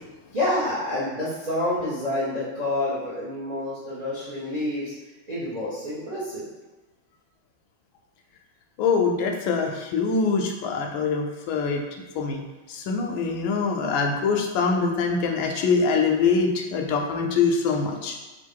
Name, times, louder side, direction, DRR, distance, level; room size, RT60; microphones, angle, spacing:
voice 1, 0.3-4.9 5.3-6.5, left 1 dB, 75° right, -9 dB, 0.3 m, -28 dB
voice 2, 8.8-11.8 12.2-12.4 12.7-18.2, left 5 dB, 75° left, 3 dB, 1.3 m, -24 dB
3.7 x 2.5 x 4.5 m, 1.1 s
omnidirectional pair, 2.4 m